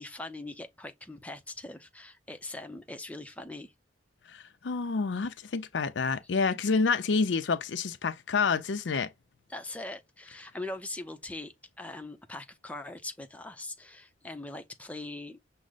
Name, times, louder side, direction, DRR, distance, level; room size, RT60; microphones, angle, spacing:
voice 1, 0.0-3.7 9.5-15.4, left 2 dB, 10° left, 0.6 m, -41 dB
voice 2, 4.3-9.1, left 4 dB, 70° left, 0.5 m, -28 dB
6.1 x 2.1 x 3.9 m
head